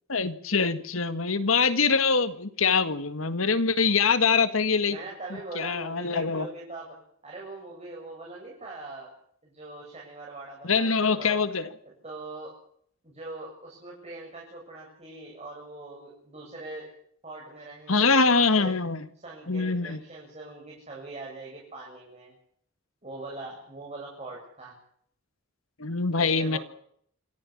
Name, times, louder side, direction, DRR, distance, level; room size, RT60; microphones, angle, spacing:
voice 1, 0.1-5.0 5.6-6.5 10.6-11.7 17.9-19.1 19.5-20.0 25.8-26.6, left 4 dB, 85° left, 12 dB, 1.9 m, -24 dB
voice 2, 4.9-7.0 7.2-9.1 9.4-11.4 12.0-12.5 13.0-16.9 17.2-18.7 19.2-22.3 23.0-24.7 26.1-26.6, right 2 dB, 30° right, -3 dB, 7.6 m, -42 dB
27.0 x 14.5 x 8.7 m, 0.65 s
head